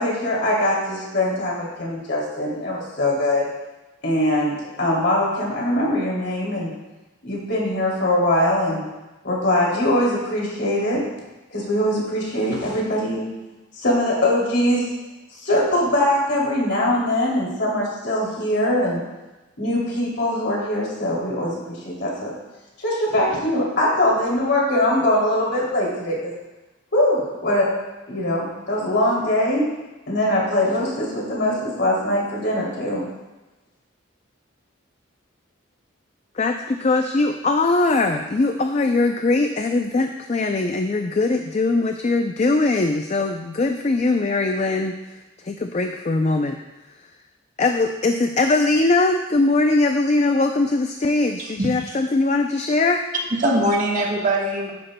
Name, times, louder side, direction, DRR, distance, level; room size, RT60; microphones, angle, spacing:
voice 1, 0.0-3.5 4.0-6.7 7.2-8.8 9.2-11.0 11.5-13.3 13.8-14.8 15.4-19.0 19.6-22.3 22.8-26.3 26.9-27.7 28.1-29.6 30.1-33.0, left 1 dB, 55° left, -4 dB, 2.8 m, -22 dB
voice 2, 36.4-44.9 45.4-46.6 47.6-53.0, left 2 dB, 35° left, 5 dB, 0.4 m, -21 dB
voice 3, 51.4-52.0 53.4-54.7, right 1 dB, 40° right, -1 dB, 1.3 m, -22 dB
11.5 x 9.9 x 2.2 m, 1.1 s
head